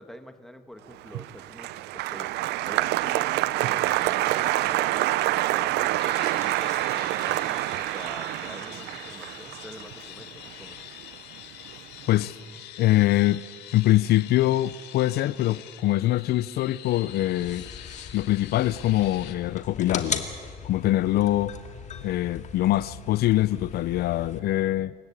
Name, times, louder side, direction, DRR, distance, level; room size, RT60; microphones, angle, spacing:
voice 1, 0.0-2.3 2.6-10.8, equal, ahead, 1.8 m, -45 dB
Applause, 1.0-11.4 11.7-12.3, right 16 dB, 80° right, 0.6 m, -27 dB
sound 1, 6.0-19.3, left 12 dB, 90° left, 1.8 m, -45 dB
voice 2, 12.8-13.4 13.7-17.7 18.1-20.2 20.6-21.5 22.0-24.9, left 15 dB, 70° left, 0.5 m, -23 dB
sound 2, 17.4-24.4, left 6 dB, 45° left, 2.3 m, -38 dB
28.0 x 15.5 x 8.8 m
cardioid pair, 110°, 17 cm